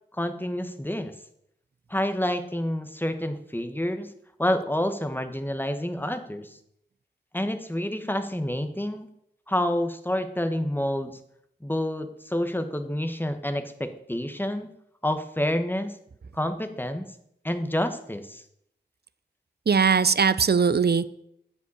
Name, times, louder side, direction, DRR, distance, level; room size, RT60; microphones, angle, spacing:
voice 1, 0.1-1.1 1.9-4.1 4.4-6.5 7.3-9.1 9.5-11.2 11.6-14.7 15.0-16.0 16.3-17.1 17.4-18.4, left 1 dB, 10° left, 8 dB, 1.2 m, -28 dB
voice 2, 19.7-21.1, right 5 dB, 60° right, 15 dB, 0.5 m, -20 dB
12.5 x 5.3 x 8.6 m, 0.75 s
wide cardioid pair, 50°, 19 cm